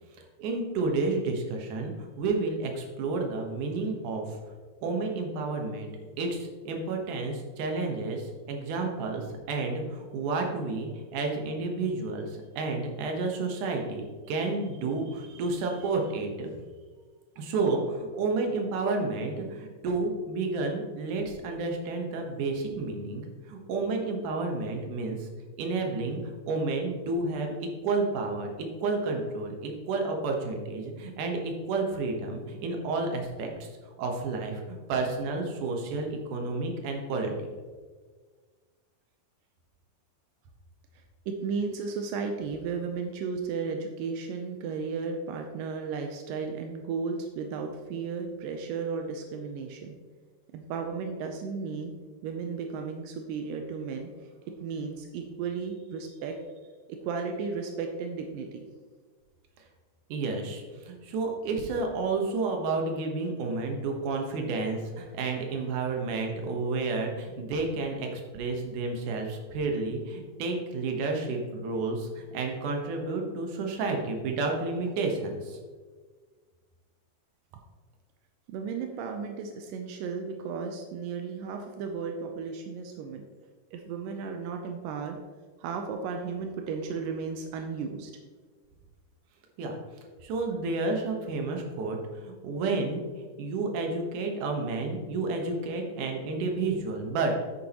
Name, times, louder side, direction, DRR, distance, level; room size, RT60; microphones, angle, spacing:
voice 1, 0.4-4.4 4.8-5.9 6.2-16.5 17.4-25.3 25.6-26.2 26.5-28.5 28.8-33.5 34.0-37.5 60.1-75.6 89.6-89.8 90.2-92.0 92.2-97.5, right 3 dB, 65° right, 2 dB, 2.3 m, -31 dB
voice 2, 41.0-50.0 50.5-51.9 52.2-54.1 54.5-56.4 57.0-58.6 78.5-83.3 83.7-85.2 85.6-88.1, right 5 dB, 85° right, 4 dB, 2.0 m, -34 dB
9.6 x 9.3 x 3.0 m, 1.5 s
omnidirectional pair, 4.6 m